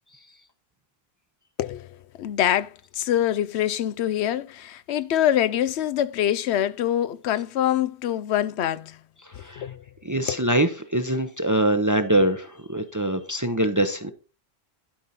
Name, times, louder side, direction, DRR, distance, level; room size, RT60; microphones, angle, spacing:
voice 1, 1.6-9.0 9.4-9.8 10.3-10.4, left 11 dB, 85° left, 0.9 m, -25 dB
voice 2, 9.2-9.7 10.0-14.1, right 1 dB, 20° right, 0.6 m, -24 dB
11.5 x 5.4 x 4.2 m
omnidirectional pair, 1.1 m